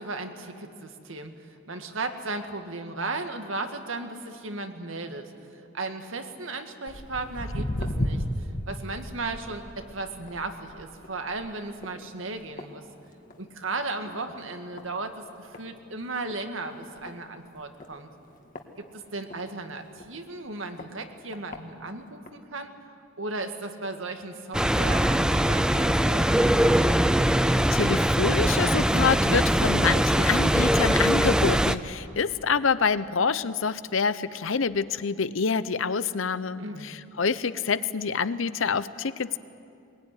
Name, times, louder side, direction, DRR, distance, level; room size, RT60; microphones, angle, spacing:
voice 1, 0.0-12.8 13.4-18.1 18.9-22.7 23.2-26.5 36.6-36.9, right 3 dB, 75° right, 6 dB, 1.9 m, -36 dB
Walk footsteps, 6.9-13.5 13.8-14.2 14.8-14.9 15.5-15.6 16.0-16.1 16.3-16.4 17.0-17.1 17.8-19.4 20.0-20.1 20.8-20.9 21.3-21.6 22.3-22.4, left 1 dB, 40° left, 1.8 m, -34 dB
sound 1, 24.5-31.8, equal, 5° right, 0.5 m, -22 dB
voice 2, 27.7-39.4, left 5 dB, 75° left, 15 dB, 0.8 m, -27 dB
21.5 x 21.5 x 9.8 m, 2.6 s
head